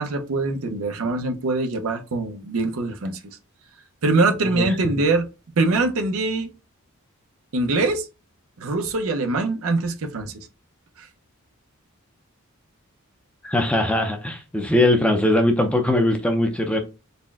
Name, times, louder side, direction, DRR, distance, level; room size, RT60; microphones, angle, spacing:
voice 1, 0.0-3.4 4.0-5.3 5.6-6.5 7.5-8.1 8.6-10.5 11.0-11.1, right 3 dB, 70° right, 0.6 m, -23 dB
voice 2, 13.4-16.8, left 1 dB, 5° left, 0.5 m, -20 dB
4.1 x 2.1 x 3.4 m
head